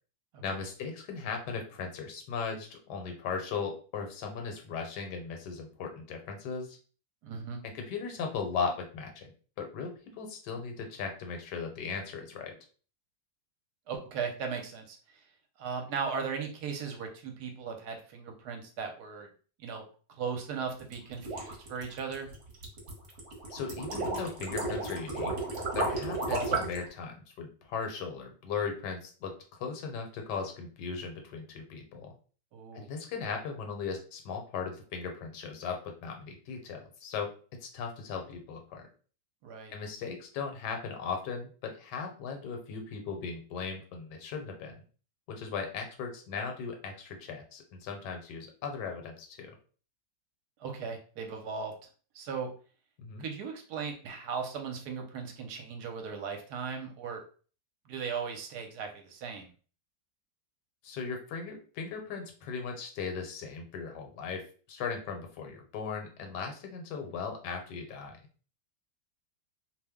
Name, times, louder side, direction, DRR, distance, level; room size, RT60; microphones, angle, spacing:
voice 1, 0.4-6.8 7.6-9.3 9.6-12.5 23.5-25.3 25.7-32.1 32.7-37.3 37.6-38.8 39.7-44.8 45.3-49.5 53.0-53.2 60.8-64.4 64.7-68.2, left 5 dB, 80° left, 4 dB, 1.2 m, -37 dB
voice 2, 7.2-7.6 13.9-15.0 15.6-19.3 19.6-19.8 20.2-22.3 32.5-32.9 39.4-39.7 50.6-51.7 52.1-52.5 53.2-57.2 57.9-59.5, right 6 dB, 70° right, 3 dB, 1.1 m, -37 dB
sound 1, 20.8-26.8, right 2 dB, 50° right, 1.0 m, -33 dB
2.8 x 2.1 x 3.5 m, 0.39 s
omnidirectional pair, 1.9 m